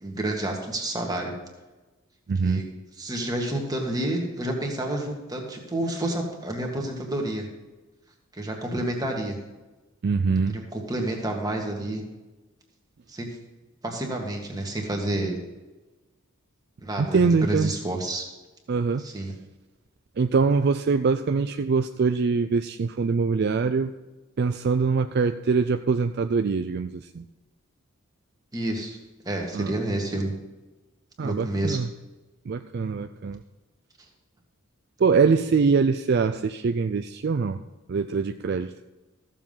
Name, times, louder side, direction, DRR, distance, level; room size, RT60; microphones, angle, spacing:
voice 1, 0.0-1.3 2.4-2.7 2.9-7.5 8.3-9.4 10.5-12.0 13.1-13.3 13.8-15.4 16.8-18.2 19.0-19.3 28.5-29.0 29.2-30.3 31.2-31.8, right 1 dB, 15° right, 1 dB, 1.8 m, -29 dB
voice 2, 2.3-2.6 10.0-10.6 17.1-17.7 18.7-19.0 20.2-23.9 24.4-27.2 29.5-29.7 31.2-31.9 32.5-33.4 35.0-37.6 37.9-38.7, right 5 dB, 50° right, 8 dB, 0.4 m, -23 dB
14.5 x 7.2 x 5.5 m, 1.2 s
head